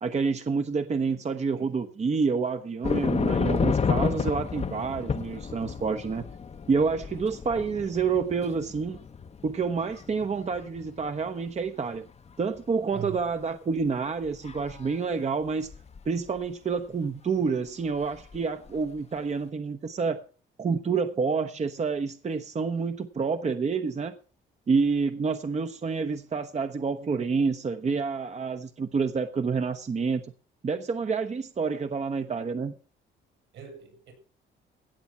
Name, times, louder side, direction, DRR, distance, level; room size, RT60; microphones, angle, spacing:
voice 1, 0.0-6.2 6.7-9.0 9.4-12.0 12.4-15.7 16.1-20.2 20.6-24.1 24.7-30.3 30.6-32.7, right 5 dB, 35° right, 0.9 m, -28 dB
sound 1, 2.8-11.5 12.0-12.6 13.1-13.2 14.2-14.9 15.7-16.1 18.1-18.4 18.7-18.9, left 6 dB, 35° left, 0.8 m, -31 dB
voice 2, 33.5-34.1, right 9 dB, 75° right, 6.9 m, -41 dB
16.5 x 7.3 x 5.6 m
cardioid pair, 90°, 20 cm